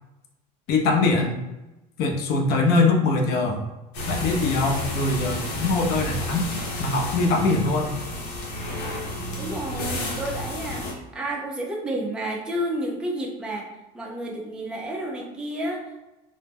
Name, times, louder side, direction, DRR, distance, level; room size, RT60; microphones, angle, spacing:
voice 1, 0.7-1.4 2.0-3.6 4.1-6.5 6.8-7.9, left 3 dB, 55° left, 1 dB, 0.5 m, -22 dB
sound 1, 3.9-10.9, left 1 dB, 90° left, 0.8 m, -31 dB
voice 2, 9.4-13.7 13.9-16.1, right 1 dB, 5° right, -2 dB, 0.4 m, -31 dB
2.1 x 2.0 x 3.3 m, 1.0 s
supercardioid pair, 125°, 20 cm